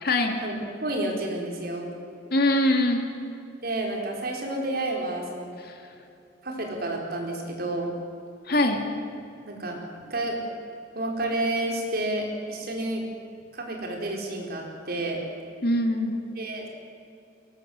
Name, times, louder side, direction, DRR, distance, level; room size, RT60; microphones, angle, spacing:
voice 1, 0.0-0.4 2.3-3.0 5.6-5.7 8.5-8.8 15.6-16.2, left 1 dB, 55° left, 4 dB, 2.7 m, -23 dB
voice 2, 0.8-1.9 3.6-5.5 6.4-7.9 9.5-10.4 10.9-13.0 13.5-15.2 16.4-16.7, right 1 dB, 55° right, 0 dB, 4.8 m, -30 dB
22.5 x 19.5 x 8.0 m, 2.6 s
head